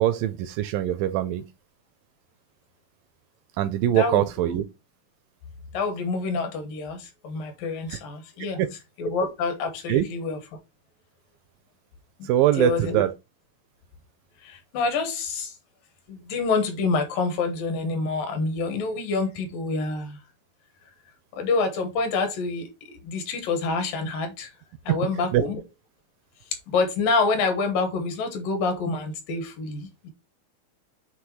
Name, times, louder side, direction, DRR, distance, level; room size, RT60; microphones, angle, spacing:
voice 1, 0.0-1.4 3.6-4.6 7.9-8.0 8.6-8.7 9.9-10.1 12.2-13.1 24.9-25.0 25.3-25.4, right 12 dB, 85° right, 2.0 m, -22 dB
voice 2, 3.9-4.5 5.7-8.6 9.0-10.4 12.2-12.3 12.6-13.0 14.4-15.5 16.1-20.2 21.3-24.5 24.9-25.6 26.7-30.1, left 4 dB, 70° left, 2.8 m, -27 dB
7.5 x 3.3 x 4.7 m
omnidirectional pair, 4.4 m